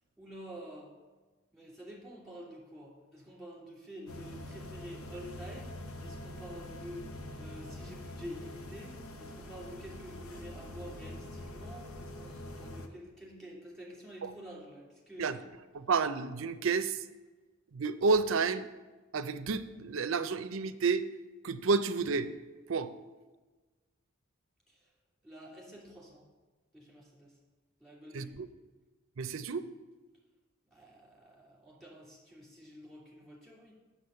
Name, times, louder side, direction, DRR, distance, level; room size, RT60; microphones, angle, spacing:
voice 1, 0.2-0.9 1.5-7.1 7.4-15.4 24.7-24.9 25.2-26.3 26.7-27.4 27.8-28.4 30.7-33.7, equal, ahead, -4 dB, 2.7 m, -48 dB
sound 1, 4.1-12.9, left 1 dB, 85° left, 0.9 m, -45 dB
voice 2, 15.7-17.0 17.7-18.7 19.1-21.1 21.4-22.3 22.7-22.9 28.1-28.5 29.2-29.7, right 4 dB, 65° right, 12 dB, 0.5 m, -30 dB
8.0 x 7.0 x 5.7 m, 1.3 s
head